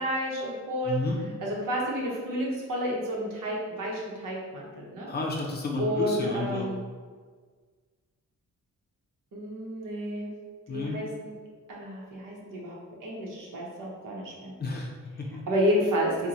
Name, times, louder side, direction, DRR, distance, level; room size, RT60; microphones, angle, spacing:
voice 1, 0.0-1.0 1.4-5.1 5.8-6.8 9.3-10.3 10.7-11.3 11.7-12.8 13.0-14.5 15.5-16.3, equal, 80° right, -3 dB, 0.9 m, -30 dB
voice 2, 0.9-1.2 5.1-6.7 10.7-11.0 14.6-15.4, left 2 dB, 30° left, -1 dB, 0.5 m, -31 dB
4.3 x 2.2 x 2.6 m, 1.5 s
wide cardioid pair, 130°, 32 cm